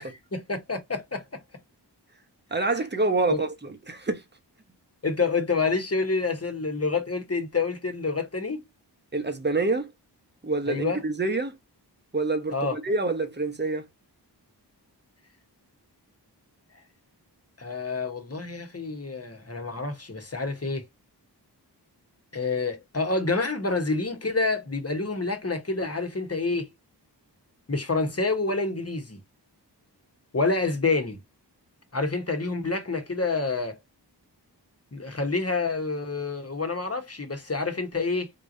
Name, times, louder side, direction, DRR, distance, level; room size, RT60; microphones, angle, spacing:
voice 1, 0.3-1.4 3.3-3.4 5.0-8.6 10.7-11.0 12.5-12.8 17.6-20.8 22.3-26.7 27.7-29.2 30.3-31.2 31.9-33.8 34.9-38.3, left 3 dB, 35° left, 1.1 m, -28 dB
voice 2, 2.5-4.2 9.1-9.9 10.4-11.6 12.1-13.9, right 3 dB, 25° right, 0.9 m, -27 dB
3.5 x 2.9 x 2.6 m
wide cardioid pair, 70°, 42 cm